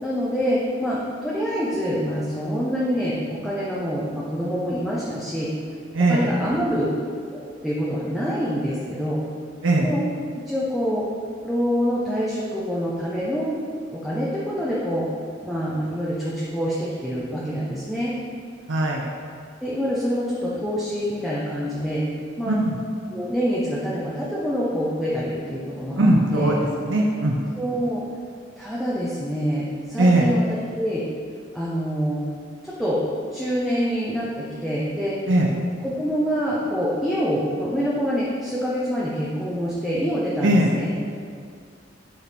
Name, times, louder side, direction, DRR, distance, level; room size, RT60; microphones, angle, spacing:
voice 1, 0.0-5.5 6.1-6.9 7.3-9.2 9.8-10.0 10.5-11.1 11.4-13.5 13.9-15.1 15.4-18.1 19.6-22.0 22.4-22.6 23.1-26.5 27.6-28.0 28.6-31.0 31.5-32.2 32.6-33.0 33.3-35.2 35.8-40.9, equal, ahead, -8 dB, 0.8 m, -26 dB
voice 2, 5.9-6.3 9.6-9.9 18.7-19.0 22.5-22.8 26.0-26.5 26.8-27.3 30.0-30.3 35.3-35.5 40.4-40.7, right 1 dB, 75° right, -1 dB, 0.7 m, -19 dB
10.5 x 4.7 x 3.5 m, 2.2 s
head